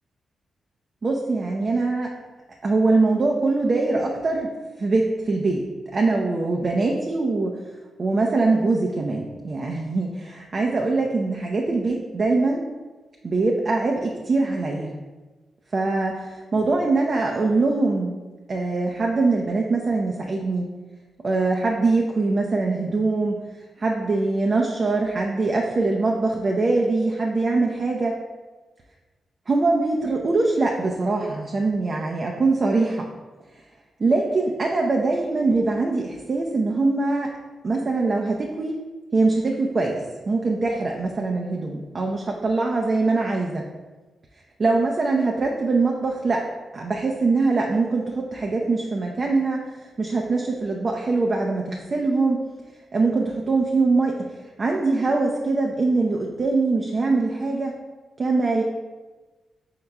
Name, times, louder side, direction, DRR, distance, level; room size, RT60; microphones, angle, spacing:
voice 1, 1.0-2.1 2.6-4.5 4.8-5.6 5.9-7.5 8.0-12.6 13.2-14.9 15.7-18.1 18.5-20.7 21.2-23.4 23.8-28.2 29.5-33.1 34.0-37.3 37.6-38.8 39.1-43.6 44.6-46.4 46.7-49.7 50.0-52.4 52.9-54.3 54.6-57.8 58.2-58.6, right 3 dB, 50° right, 0 dB, 0.5 m, -23 dB
5.6 x 3.7 x 2.3 m, 1.3 s
cardioid pair, 55°, 0 cm